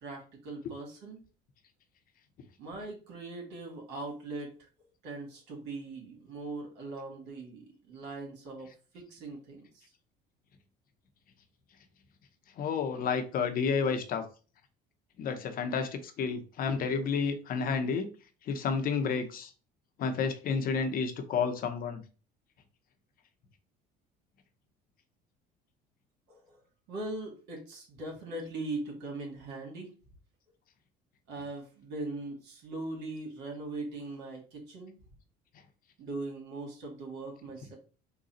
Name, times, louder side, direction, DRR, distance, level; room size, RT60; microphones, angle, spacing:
voice 1, 0.0-1.2 2.6-8.7 8.9-9.8 26.3-26.6 26.9-29.9 31.3-34.9 36.0-37.8, right 2 dB, 65° right, 0 dB, 1.8 m, -40 dB
voice 2, 12.6-14.3 15.2-18.1 18.5-19.5 20.0-22.0, left 5 dB, 50° left, 7 dB, 0.8 m, -30 dB
3.9 x 2.3 x 4.2 m, 0.36 s
supercardioid pair, 100°, 19 cm